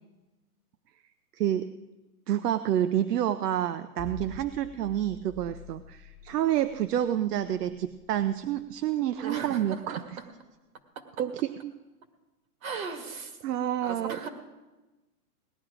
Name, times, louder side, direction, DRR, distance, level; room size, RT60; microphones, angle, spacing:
voice 1, 1.4-1.8 2.3-10.0 11.2-11.7 12.7-12.8 13.4-14.2, right 11 dB, 80° right, 12 dB, 0.7 m, -28 dB
sound 1, 4.0-10.1, left 5 dB, 25° left, 0.4 m, -48 dB
voice 2, 9.2-10.0 12.6-14.3, right 5 dB, 60° right, 6 dB, 2.0 m, -37 dB
18.0 x 11.5 x 4.9 m, 1.1 s
supercardioid pair, 175°, 47 cm